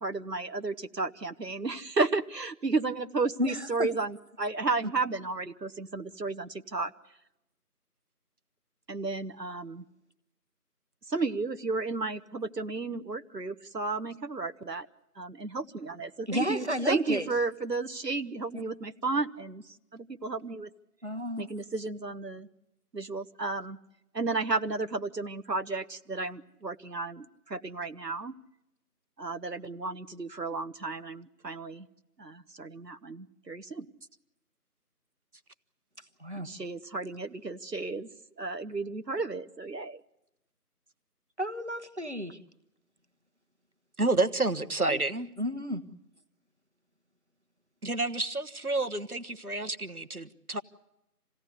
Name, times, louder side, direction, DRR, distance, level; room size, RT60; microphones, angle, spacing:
voice 1, 0.0-6.9 8.9-9.8 11.1-14.9 15.2-19.6 19.9-20.7 21.4-22.5 22.9-23.8 24.1-28.3 29.2-31.8 32.2-33.9 36.3-38.1 38.4-40.0 44.9-45.0, right 3 dB, 85° right, 9 dB, 1.3 m, -33 dB
voice 2, 3.4-3.9 16.3-17.3 18.5-18.6 21.0-21.5 36.0-36.5 41.4-42.4 45.4-45.8, equal, 45° right, 8 dB, 1.3 m, -32 dB
voice 3, 44.0-45.3 47.8-50.6, right 2 dB, 65° right, 13 dB, 1.3 m, -29 dB
27.5 x 17.0 x 8.1 m, 0.87 s
figure-of-eight pair, 180°, 48 cm